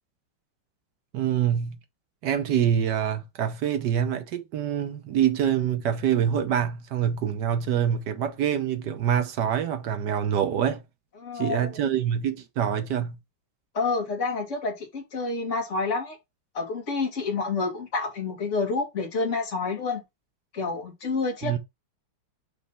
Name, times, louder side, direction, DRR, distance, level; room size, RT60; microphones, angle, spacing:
voice 1, 1.1-1.8 2.2-10.8 11.3-13.2 21.4-21.6, right 9 dB, 65° right, 1.2 m, -25 dB
voice 2, 11.2-11.8 13.7-16.2 16.5-20.0 20.5-21.6, left 4 dB, 35° left, 2.0 m, -28 dB
5.5 x 3.1 x 5.5 m
omnidirectional pair, 2.2 m